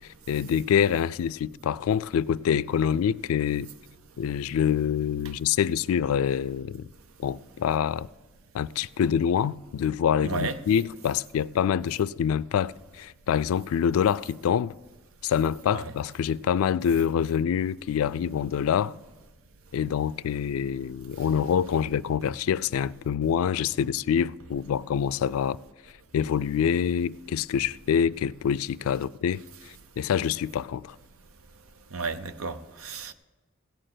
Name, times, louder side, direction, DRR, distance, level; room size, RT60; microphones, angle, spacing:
voice 1, 0.3-3.7 4.2-6.8 7.2-8.1 8.5-14.7 15.2-18.9 19.7-25.6 26.1-29.4 30.0-31.0, left 8 dB, 90° left, 0.3 m, -26 dB
voice 2, 10.2-10.6 15.7-15.8 31.9-33.1, right 4 dB, 85° right, 0.7 m, -32 dB
16.5 x 6.7 x 7.6 m
head